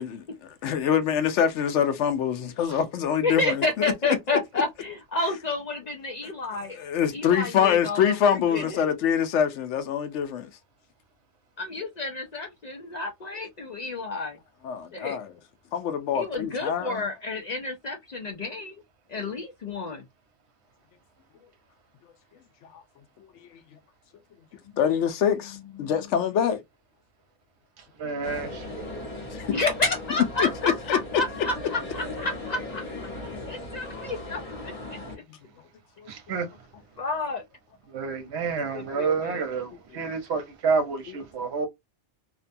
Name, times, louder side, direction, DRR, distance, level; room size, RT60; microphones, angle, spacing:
voice 1, 0.0-3.6 6.7-10.5 14.6-15.3 15.7-17.1 24.8-26.6 29.3-29.5 30.4-31.0 35.3-35.4 36.0-36.1, left 8 dB, 90° left, 0.9 m, -25 dB
voice 2, 3.2-6.8 7.1-8.9 11.6-14.4 14.9-15.2 16.1-18.8 19.1-20.0 29.5-32.8 33.2-35.0 37.0-37.4 38.6-39.4, left 3 dB, 55° left, 0.4 m, -30 dB
voice 3, 28.0-29.1 36.1-36.5 37.9-41.7, right 5 dB, 70° right, 1.0 m, -29 dB
sound 1, 28.2-35.2, left 2 dB, 35° left, 0.9 m, -37 dB
2.6 x 2.2 x 2.5 m
omnidirectional pair, 1.2 m